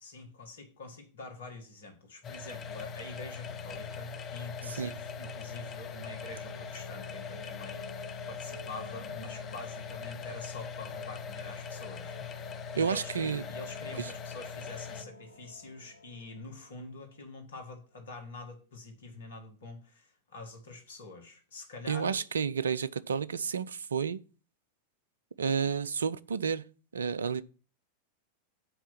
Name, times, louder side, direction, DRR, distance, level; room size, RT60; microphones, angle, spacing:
voice 1, 0.0-13.2 13.5-22.2, left 3 dB, 65° left, 1.8 m, -46 dB
sound 1, 2.2-15.0, left 6 dB, 30° left, 0.8 m, -41 dB
sound 2, 2.2-17.8, left 1 dB, 85° right, 1.5 m, -51 dB
voice 2, 12.8-13.4 14.0-14.1 21.9-24.2 25.4-26.6 26.9-27.4, right 6 dB, 70° right, 0.4 m, -31 dB
7.9 x 4.5 x 5.8 m
figure-of-eight pair, 90°, 0 cm